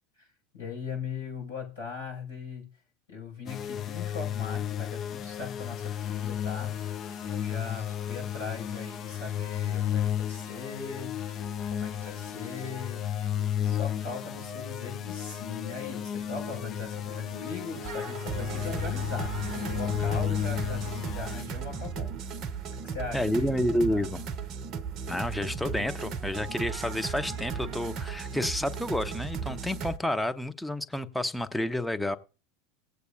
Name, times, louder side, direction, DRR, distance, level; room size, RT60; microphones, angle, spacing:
voice 1, 0.5-2.6 3.1-6.8 7.2-11.4 11.7-13.0 13.6-22.1 22.7-23.5 23.9-24.0, left 5 dB, 80° left, 5.9 m, -39 dB
sound 1, 3.5-21.4, left 10 dB, 35° left, 0.4 m, -33 dB
sound 2, 5.8-21.2, right 5 dB, 80° right, 0.4 m, -50 dB
sound 3, 17.8-30.0, right 6 dB, 40° right, 0.7 m, -36 dB
voice 2, 23.1-24.2 25.1-32.2, left 1 dB, 5° left, 0.7 m, -30 dB
18.5 x 8.1 x 2.6 m
figure-of-eight pair, 80°, 0 cm